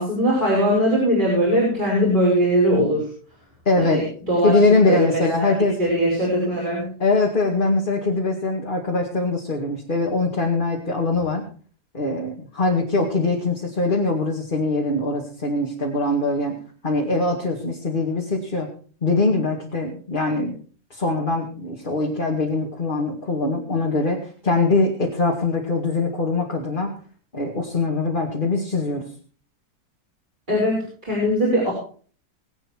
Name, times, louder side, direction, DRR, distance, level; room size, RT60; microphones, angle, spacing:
voice 1, 0.0-3.1 3.8-5.5 5.8-6.9 30.5-31.7, equal, 25° right, -5 dB, 5.9 m, -21 dB
voice 2, 3.7-4.0 4.4-5.8 7.0-11.5 11.9-16.6 16.8-18.7 19.0-20.6 20.9-26.9 27.3-29.0, left 3 dB, 30° left, -1 dB, 2.3 m, -22 dB
22.0 x 8.7 x 4.5 m, 0.42 s
omnidirectional pair, 1.8 m